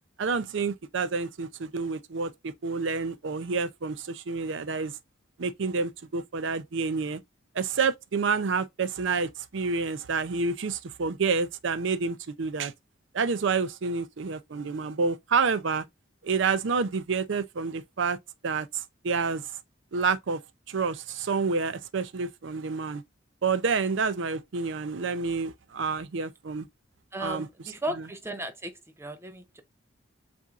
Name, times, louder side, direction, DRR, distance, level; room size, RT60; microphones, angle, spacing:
voice 1, 0.2-4.9 5.4-7.2 7.5-12.7 13.1-15.9 16.2-18.2 18.4-19.5 19.9-20.4 20.7-23.0 23.4-26.7 27.2-27.5 28.0-28.1, right 4 dB, 65° right, 0.5 m, -28 dB
voice 2, 27.1-29.6, right 1 dB, 15° right, 0.6 m, -36 dB
7.3 x 2.7 x 2.4 m
head